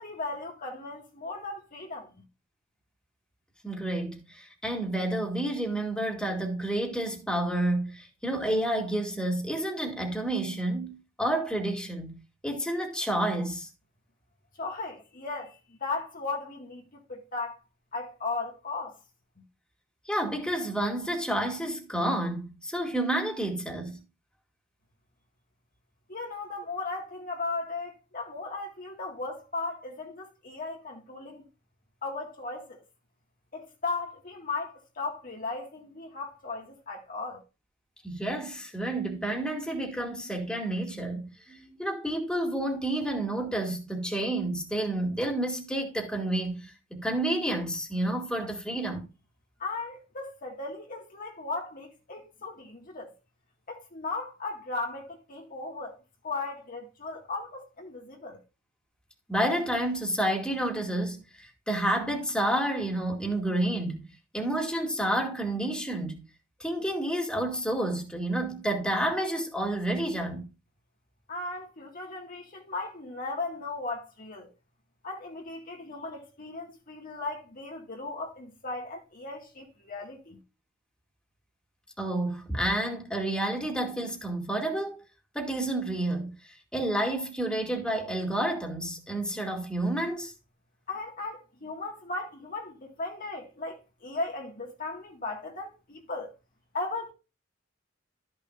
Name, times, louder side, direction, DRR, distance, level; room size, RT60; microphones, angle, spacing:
voice 1, 0.0-2.1 14.6-17.6 17.9-19.0 26.1-31.4 32.0-32.8 33.5-37.4 49.6-53.1 53.7-56.0 56.2-58.4 71.3-74.5 75.0-80.4 90.9-96.3 96.7-97.1, left 3 dB, 45° left, 1.9 m, -36 dB
voice 2, 3.6-13.7 20.1-24.0 38.0-49.1 59.3-64.0 64.3-66.2 66.6-70.5 82.0-85.0 85.3-86.4 86.7-90.3, right 1 dB, 5° left, 2.2 m, -30 dB
13.0 x 6.4 x 2.6 m
head